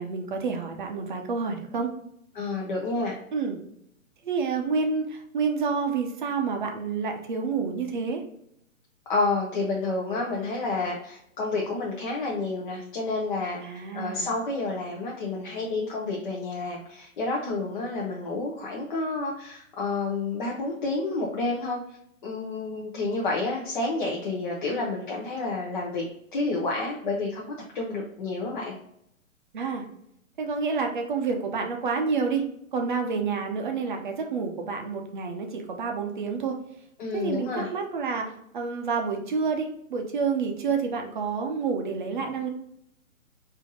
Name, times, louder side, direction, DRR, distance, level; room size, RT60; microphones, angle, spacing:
voice 1, 0.0-1.9 3.3-3.6 4.2-8.2 13.6-14.3 29.5-29.9 30.4-32.4 32.7-36.6 37.1-42.5, right 5 dB, 35° right, 3 dB, 0.6 m, -29 dB
voice 2, 2.3-3.1 9.1-21.8 22.2-26.1 26.3-27.5 27.7-28.7 37.0-37.7, left 3 dB, 35° left, -3 dB, 0.6 m, -29 dB
3.5 x 2.7 x 3.7 m, 0.74 s
hypercardioid pair, 145°, 41 cm